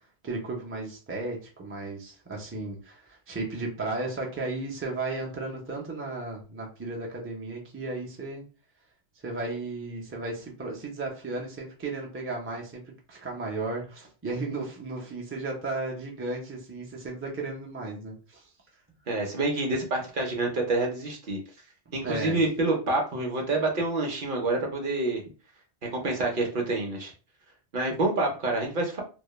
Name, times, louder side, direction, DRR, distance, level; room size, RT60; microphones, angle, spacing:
voice 1, 0.2-8.4 9.2-18.5 21.9-22.4, right 2 dB, 20° right, -1 dB, 0.3 m, -34 dB
voice 2, 19.1-21.4 21.9-25.2 25.9-27.1 27.7-29.0, right 2 dB, 55° right, 1 dB, 0.7 m, -27 dB
2.2 x 2.1 x 3.0 m, 0.35 s
omnidirectional pair, 1.2 m